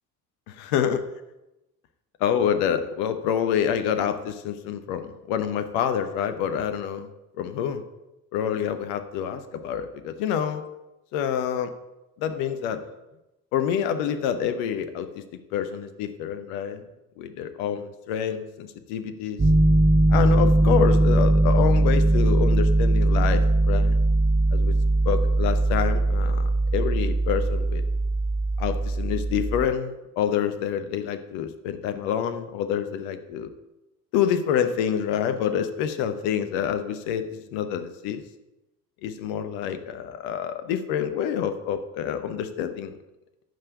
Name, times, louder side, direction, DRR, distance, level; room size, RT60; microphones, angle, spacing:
voice 1, 0.5-1.0 2.2-7.1 7.4-7.8 8.3-10.6 11.1-11.7 12.2-12.8 13.5-15.2 15.5-16.8 17.2-19.4 20.1-24.0 24.5-24.7 25.0-27.8 28.6-33.5 34.1-38.2 39.0-43.0, left 8 dB, 55° left, 9 dB, 1.0 m, -27 dB
Piano, 19.4-29.7, right 2 dB, 20° right, 1.6 m, -20 dB
8.9 x 5.6 x 8.1 m, 0.96 s
figure-of-eight pair, 60°, 49 cm